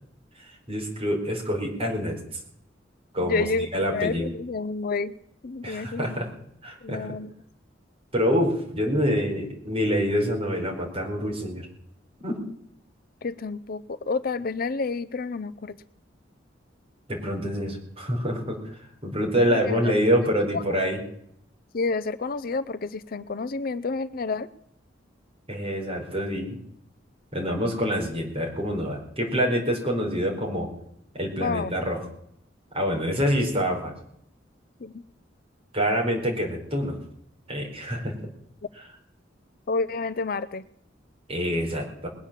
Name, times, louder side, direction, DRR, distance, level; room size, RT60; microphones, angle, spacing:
voice 1, 0.7-2.2 3.1-3.4 3.7-4.3 5.6-6.3 6.6-7.1 8.1-11.7 12.2-12.4 17.1-18.6 19.0-21.0 25.5-26.6 27.3-30.7 31.1-32.0 32.7-33.9 35.7-37.0 37.5-38.1 41.3-42.1, equal, 30° right, 0 dB, 4.4 m, -26 dB
voice 2, 3.2-5.1 5.4-6.2 6.8-7.4 13.2-15.8 19.5-19.9 20.5-20.8 21.7-24.5 31.4-31.7 34.8-35.0 39.7-40.6, left 4 dB, 50° left, 15 dB, 0.5 m, -29 dB
21.0 x 8.6 x 7.4 m, 0.73 s
head